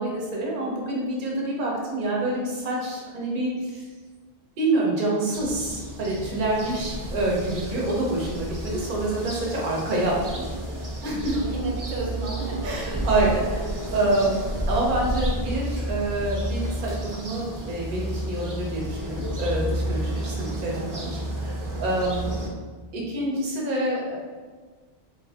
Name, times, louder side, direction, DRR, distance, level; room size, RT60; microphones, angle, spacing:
voice 1, 0.0-3.8 4.6-10.5 11.0-11.3 12.6-13.4 13.9-14.4 14.7-22.3 22.9-24.2, right 2 dB, 55° right, -3 dB, 0.9 m, -27 dB
sound 1, 5.3-22.5, right 1 dB, 30° right, 0.3 m, -31 dB
voice 2, 6.6-7.1 11.3-14.2 20.1-20.5 22.2-22.6, right 2 dB, 90° right, -2 dB, 1.0 m, -35 dB
2.8 x 2.6 x 3.4 m, 1.5 s
omnidirectional pair, 1.1 m